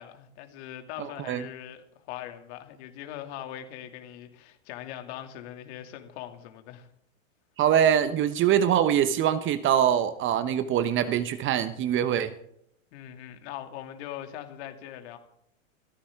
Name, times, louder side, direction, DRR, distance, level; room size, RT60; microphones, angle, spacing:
voice 1, 0.0-6.9 12.9-15.2, left 11 dB, 55° left, 2.6 m, -41 dB
voice 2, 1.0-1.4 7.6-12.3, right 9 dB, 30° right, 0.9 m, -24 dB
21.5 x 14.0 x 3.7 m
hypercardioid pair, 100°, 40 cm